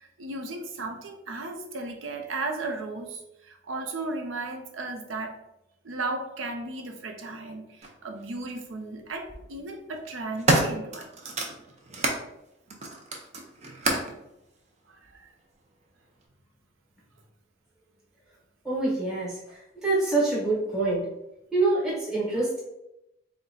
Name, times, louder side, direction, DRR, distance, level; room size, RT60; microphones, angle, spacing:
voice 1, 0.0-5.4 5.8-11.1 15.1-15.3, right 2 dB, 85° right, 5 dB, 0.6 m, -35 dB
sound 1, 7.8-7.9 9.0-9.4 9.9-12.2 12.7-14.2 15.0-15.1, right 2 dB, 35° right, 0.6 m, -28 dB
voice 2, 18.6-19.3 19.8-21.0 21.5-22.6, right 2 dB, 5° right, -6 dB, 1.1 m, -25 dB
4.2 x 2.2 x 3.8 m, 0.87 s
head